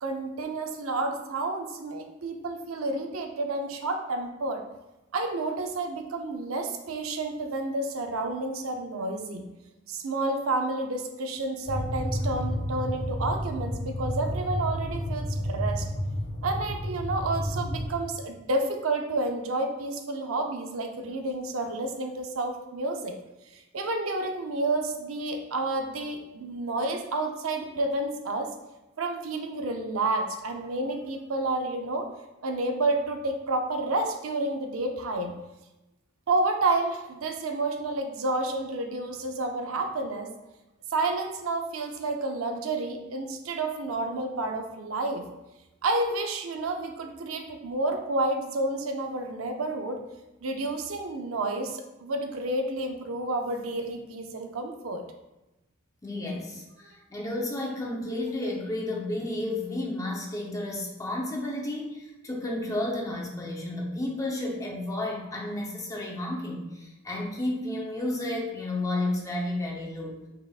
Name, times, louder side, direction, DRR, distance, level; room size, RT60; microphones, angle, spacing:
voice 1, 0.0-4.6 5.1-9.5 9.9-15.9 16.4-23.1 23.5-28.5 29.0-32.1 32.4-35.3 36.3-40.3 40.9-45.3 45.8-50.0 50.4-55.0, right 2 dB, 90° right, 4 dB, 0.6 m, -30 dB
sound 1, 11.7-17.8, equal, 55° left, 1.0 m, -31 dB
voice 2, 56.0-70.2, left 1 dB, 15° left, -2 dB, 0.8 m, -32 dB
5.7 x 3.4 x 2.4 m, 0.99 s
head